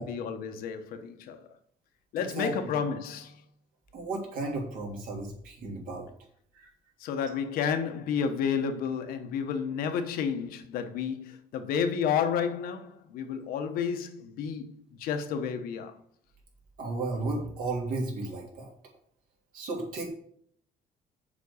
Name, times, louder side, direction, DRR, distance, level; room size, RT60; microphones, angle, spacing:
voice 1, 0.0-1.4 2.1-3.4 7.0-15.9, left 7 dB, 90° left, 1.1 m, -31 dB
voice 2, 2.2-2.5 3.9-6.0 6.5-6.7 16.8-18.7 19.5-20.1, right 2 dB, 75° right, 3.3 m, -34 dB
7.4 x 5.2 x 7.0 m
cardioid pair, 130°, 15 cm